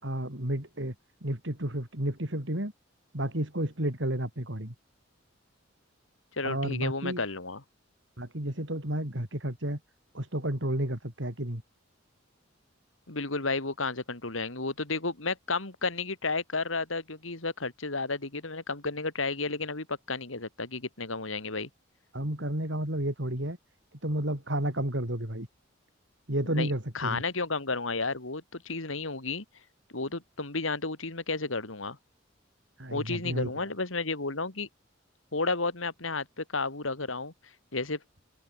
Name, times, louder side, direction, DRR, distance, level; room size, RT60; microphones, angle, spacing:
voice 1, 0.0-0.9 1.2-2.7 3.1-4.7 6.4-7.2 8.2-9.8 10.1-11.6 22.1-23.6 24.0-25.5 26.3-27.2 32.8-33.5, right 1 dB, 65° right, 4.9 m, -31 dB
voice 2, 6.4-7.6 13.1-21.7 26.5-29.4 29.9-32.0 32.9-34.7 35.3-37.3 37.7-38.0, left 3 dB, 90° left, 3.2 m, -32 dB
open air
head